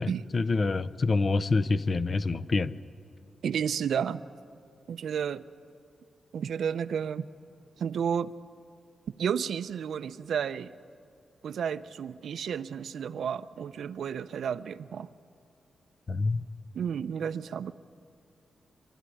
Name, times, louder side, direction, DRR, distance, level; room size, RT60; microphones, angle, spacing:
voice 1, 0.0-2.7 16.1-16.4, left 3 dB, 40° left, 14 dB, 0.5 m, -27 dB
voice 2, 3.4-4.2 4.9-5.5 6.3-7.3 7.8-8.3 9.2-10.7 11.4-15.1 16.7-17.7, right 7 dB, 80° right, 14 dB, 0.6 m, -31 dB
25.0 x 13.0 x 10.0 m, 2.4 s
wide cardioid pair, 125°, 0 cm